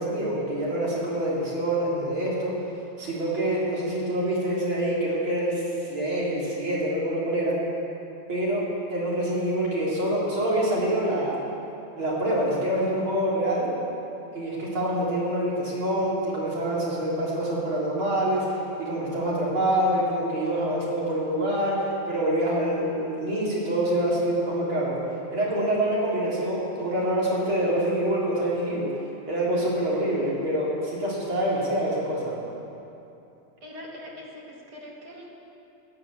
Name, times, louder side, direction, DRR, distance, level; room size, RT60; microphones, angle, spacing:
voice 1, 0.0-2.5 3.0-7.6 8.3-8.6 8.9-11.4 12.0-13.7 14.3-25.0 25.3-28.9 29.3-32.3, right 1 dB, 75° right, -6 dB, 4.4 m, -26 dB
voice 2, 33.6-35.3, left 1 dB, 50° right, -3 dB, 2.6 m, -42 dB
14.0 x 10.5 x 8.3 m, 2.9 s
omnidirectional pair, 2.3 m